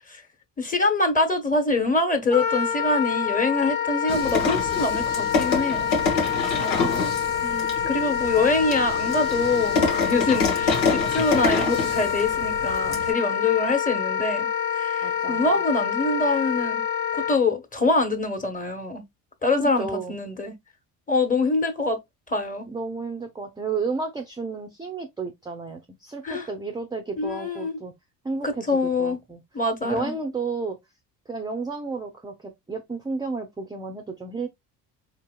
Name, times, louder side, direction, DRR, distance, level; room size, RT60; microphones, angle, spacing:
voice 1, 0.6-5.9 7.4-14.5 14.7-16.8 17.1-19.0 19.4-20.5 21.1-22.0 22.3-22.7 26.2-26.5 27.2-27.8 28.4-29.2 29.5-30.1, left 3 dB, 15° left, 1.3 m, -25 dB
Wind instrument woodwind instrument, 2.3-17.4, left 8 dB, 45° left, 1.0 m, -26 dB
sound 1, 4.1-13.1, left 4 dB, 85° left, 1.0 m, -27 dB
voice 2, 6.6-7.2 15.0-15.5 19.6-20.2 22.7-27.9 28.2-29.4 29.8-30.8 31.3-34.5, right 4 dB, 10° right, 0.6 m, -32 dB
4.6 x 2.7 x 2.2 m
hypercardioid pair, 60°, 49 cm